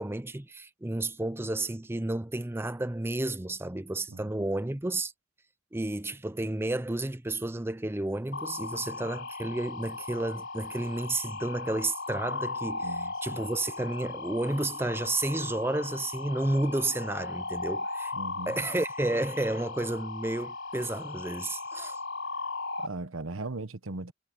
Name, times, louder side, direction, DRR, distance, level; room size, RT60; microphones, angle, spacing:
voice 1, 0.0-5.1 5.7-18.1 18.5-22.0, right 2 dB, 10° right, 0.6 m, -31 dB
voice 2, 4.1-4.5 12.8-13.4 18.1-18.6 22.8-24.1, right 2 dB, 85° right, 1.0 m, -38 dB
sound 1, 8.3-22.9, left 3 dB, 65° left, 4.0 m, -37 dB
head